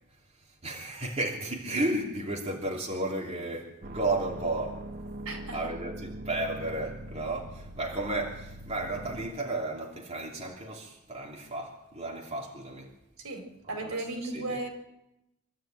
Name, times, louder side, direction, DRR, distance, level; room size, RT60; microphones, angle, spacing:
voice 1, 0.4-4.8 5.5-12.9 13.7-14.6, right 2 dB, 30° right, 2.9 m, -33 dB
sound 1, 3.8-9.3, right 1 dB, 45° right, 1.1 m, -42 dB
voice 2, 5.2-5.6 13.2-14.7, right 2 dB, 75° right, 4.8 m, -35 dB
25.0 x 13.0 x 8.9 m
head